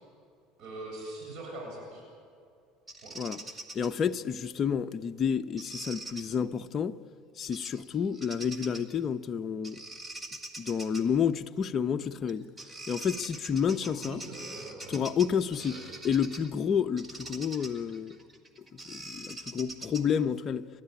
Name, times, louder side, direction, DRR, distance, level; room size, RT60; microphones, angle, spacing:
voice 1, 0.6-2.0 3.0-3.2 13.8-15.0 15.5-16.0, right 2 dB, 55° right, 8.0 m, -42 dB
Bird vocalization bird call bird song, 2.9-3.9 5.6-6.2 7.5-7.8 8.1-8.9 9.6-11.0 12.3-12.4 12.6-16.5 17.0-20.2, right 2 dB, 10° right, 1.8 m, -43 dB
voice 2, 3.7-7.0 7.4-9.8 10.6-12.5 12.9-14.2 14.9-18.2 18.7-20.7, left 7 dB, 30° left, 0.7 m, -30 dB
30.0 x 12.5 x 10.0 m
supercardioid pair, 125°, 0 cm